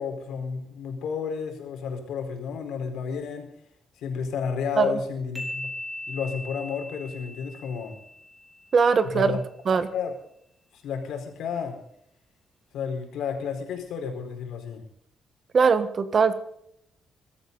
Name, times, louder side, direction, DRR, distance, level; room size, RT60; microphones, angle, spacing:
voice 1, 0.0-3.5 4.0-5.7 6.1-7.9 9.1-9.4 9.9-10.1 10.7-11.8 12.7-14.8, left 6 dB, 85° left, 4 dB, 4.4 m, -31 dB
sound 1, 5.4-8.9, left 1 dB, 5° right, 3.7 m, -39 dB
voice 2, 8.7-9.4 9.7-9.9 15.5-16.4, right 5 dB, 35° right, 12 dB, 1.2 m, -21 dB
22.0 x 13.0 x 4.0 m, 0.71 s
cardioid pair, 170°, 0 cm